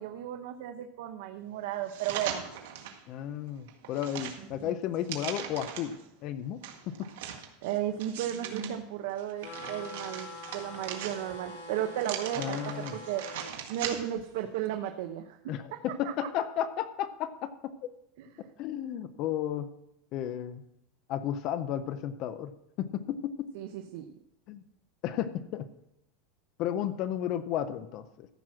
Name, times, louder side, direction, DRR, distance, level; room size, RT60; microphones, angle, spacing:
voice 1, 0.0-2.4 7.6-13.2 13.7-15.4 15.7-15.8 18.2-18.5 23.5-24.0, right 11 dB, 60° right, 6 dB, 0.8 m, -34 dB
sound 1, 1.9-3.0 3.5-6.0 6.6-8.7 9.2-11.5 12.0-14.3 14.6-14.7, right 9 dB, 75° right, 1.7 m, -40 dB
voice 2, 3.1-6.0 6.2-6.6 6.9-7.1 12.4-13.0 15.5-17.5 17.8-17.9 18.6-19.7 20.1-20.6 21.1-22.5 22.8-23.5 24.5-24.6 25.0-25.7 26.6-28.3, left 10 dB, 35° left, 12 dB, 0.5 m, -33 dB
sound 2, 9.4-13.5, left 2 dB, 85° left, 5.1 m, -44 dB
14.0 x 6.0 x 6.1 m, 0.81 s
supercardioid pair, 175°, 0 cm